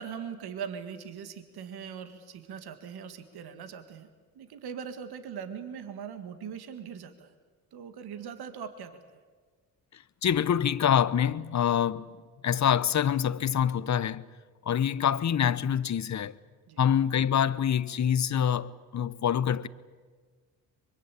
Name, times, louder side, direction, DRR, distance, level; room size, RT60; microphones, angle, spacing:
voice 1, 0.0-4.1 4.4-7.3 7.7-8.9 16.7-16.8, right 7 dB, 65° right, 1.9 m, -40 dB
voice 2, 10.2-12.1 12.4-14.2 14.7-16.3 16.8-19.7, left 9 dB, 45° left, 1.0 m, -25 dB
24.5 x 22.0 x 8.5 m
supercardioid pair, 55°, 40 cm